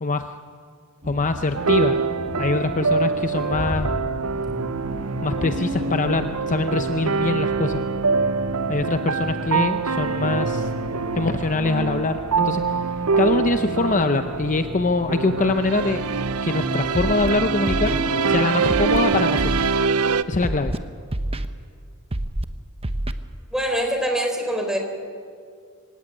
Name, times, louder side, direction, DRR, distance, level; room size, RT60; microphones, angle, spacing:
voice 1, 0.0-0.3 1.0-2.0 2.4-3.9 5.2-7.9 8.7-10.7 11.1-12.8 13.2-16.0 16.4-19.6 20.3-20.7, left 3 dB, 35° left, 8 dB, 0.7 m, -24 dB
Accelerating revving vroom, 1.0-18.5, equal, 45° right, 2.3 m, -34 dB
sound 1, 1.5-20.2, right 5 dB, 80° right, 0.8 m, -24 dB
Scratching (performance technique), 16.9-17.3 17.7-18.0 18.7-19.0 19.4-19.7 20.4-20.8 21.1-21.5 22.1-22.4 22.8-23.1, right 1 dB, 25° right, 0.9 m, -26 dB
voice 2, 23.5-24.8, equal, 5° right, 3 dB, 3.9 m, -24 dB
24.5 x 17.0 x 9.8 m, 2.2 s
head